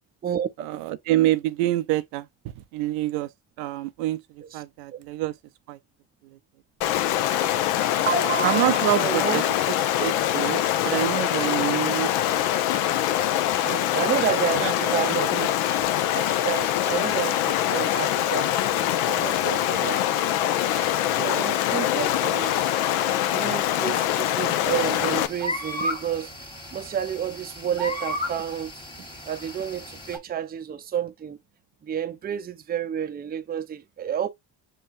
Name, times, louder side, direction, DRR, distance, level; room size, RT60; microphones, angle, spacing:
voice 1, 0.6-3.3 3.6-5.3 5.7-5.8 6.2-6.4 8.4-9.4 10.0-12.1 14.6-14.7 15.1-15.5 15.8-15.9, right 15 dB, 85° right, 0.6 m, -27 dB
Stream, 6.8-25.3, left 12 dB, 80° left, 0.6 m, -24 dB
voice 2, 8.1-9.4 13.6-15.4 16.1-22.8 23.3-26.4 26.7-28.7 29.2-31.4 31.8-34.3, right 8 dB, 20° right, 0.4 m, -30 dB
sound 1, 24.6-30.2, left 1 dB, 10° left, 1.3 m, -34 dB
5.6 x 2.2 x 2.5 m
supercardioid pair, 70°, 50 cm